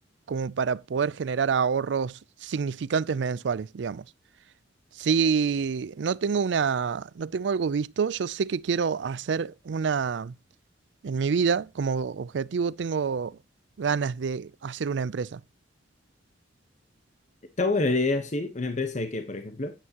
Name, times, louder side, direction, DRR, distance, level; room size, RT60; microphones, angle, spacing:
voice 1, 0.3-4.0 4.9-10.4 11.0-13.4 13.8-15.4, right 6 dB, 75° right, 0.4 m, -27 dB
voice 2, 17.6-19.7, left 3 dB, 40° left, 1.1 m, -27 dB
11.0 x 9.1 x 2.9 m
head